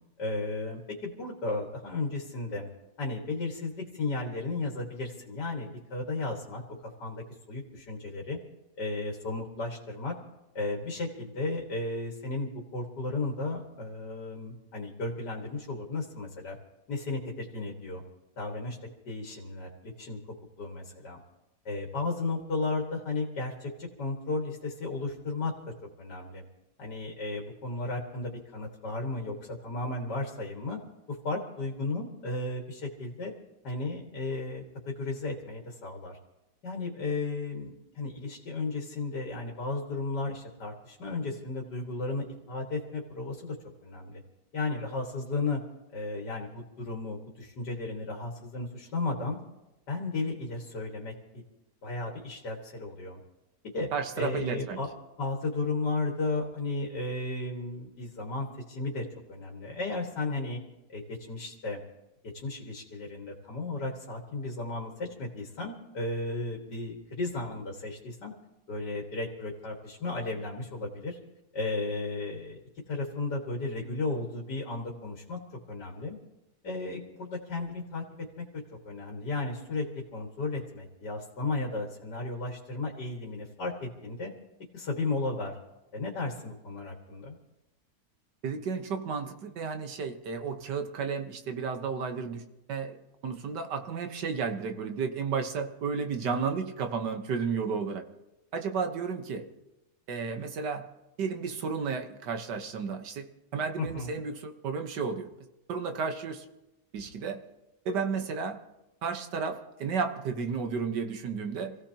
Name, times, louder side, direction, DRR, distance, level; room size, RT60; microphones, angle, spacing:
voice 1, 0.2-2.7 3.0-6.6 7.0-8.4 8.8-10.1 10.5-16.6 16.9-18.0 18.4-18.8 19.1-20.2 20.6-21.2 21.7-25.5 26.0-26.4 26.8-30.8 31.1-33.3 33.6-36.2 36.6-43.6 43.8-44.2 44.5-45.6 45.9-49.4 49.9-51.1 51.8-53.2 53.7-53.9 54.2-54.9 55.2-60.6 60.9-61.8 62.3-68.3 68.7-71.2 71.5-72.6 72.9-75.4 75.7-76.2 76.6-78.0 78.4-78.5 78.8-79.8 80.1-84.3 84.7-85.5 85.9-87.4 103.8-104.1, left 3 dB, 80° left, 1 dB, 2.5 m, -34 dB
voice 2, 53.9-54.8 88.4-92.4 92.7-93.0 93.2-98.0 98.5-99.5 100.1-100.9 101.2-105.3 105.7-106.5 106.9-107.4 107.9-108.6 109.0-111.8, right 5 dB, 85° right, 6 dB, 1.8 m, -32 dB
27.0 x 16.5 x 2.9 m, 0.96 s
omnidirectional pair, 1.8 m